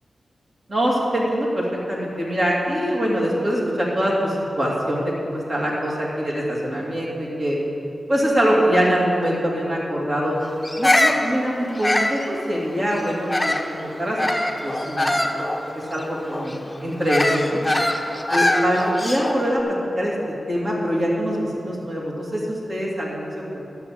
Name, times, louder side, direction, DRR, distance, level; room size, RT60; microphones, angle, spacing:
voice 1, 0.7-7.6 8.1-10.4 10.8-14.2 14.4-15.5 15.7-17.6 18.3-19.6 20.0-20.1 20.5-23.6, equal, 45° right, -4 dB, 2.7 m, -23 dB
Bird vocalization bird call bird song, 10.6-13.7 14.2-19.5, left 1 dB, 10° left, 0.8 m, -23 dB
11.5 x 7.0 x 7.6 m, 2.8 s
wide cardioid pair, 95°, 0 cm